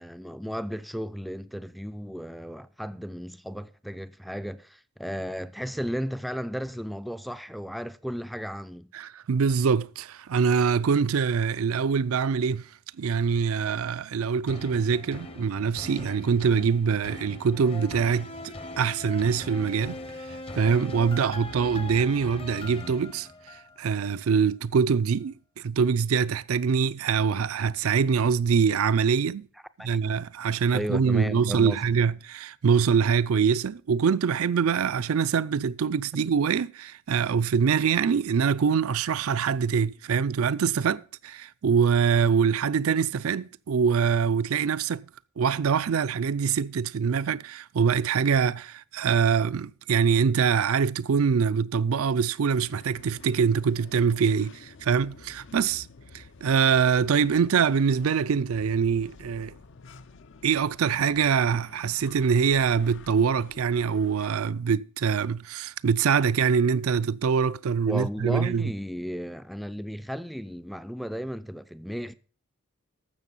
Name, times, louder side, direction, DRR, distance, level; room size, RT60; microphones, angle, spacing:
voice 1, 0.0-8.9 29.8-30.2 30.7-31.8 67.9-72.1, equal, ahead, 0.4 m, -34 dB
voice 2, 8.9-12.7 13.0-20.0 20.3-29.5 29.8-45.0 45.4-55.9 56.1-59.5 60.4-68.7, right 6 dB, 80° right, 0.4 m, -24 dB
sound 1, 14.5-23.9 24.3-24.4, left 1 dB, 25° left, 0.8 m, -40 dB
sound 2, 52.6-64.5, left 4 dB, 60° left, 0.6 m, -50 dB
12.5 x 7.4 x 5.4 m
head